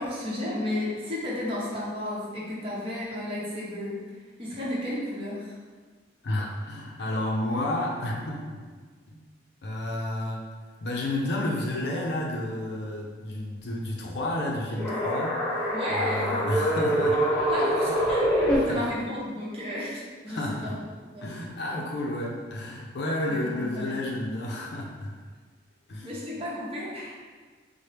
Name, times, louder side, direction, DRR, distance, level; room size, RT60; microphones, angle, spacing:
voice 1, 0.0-3.9 4.4-5.6 15.7-16.3 17.5-18.2 18.7-20.8 21.1-21.3 23.3-24.0 26.0-27.2, left 1 dB, 30° right, -7 dB, 0.9 m, -33 dB
voice 2, 6.2-8.6 9.1-9.2 9.6-10.5 10.8-17.2 17.8-18.0 18.5-18.9 20.3-20.8 21.2-25.2 25.9-26.1, left 1 dB, 60° left, -2 dB, 0.5 m, -31 dB
sound 1, 14.7-18.6, equal, 10° left, 0.8 m, -25 dB
4.3 x 2.1 x 3.3 m, 1.5 s
head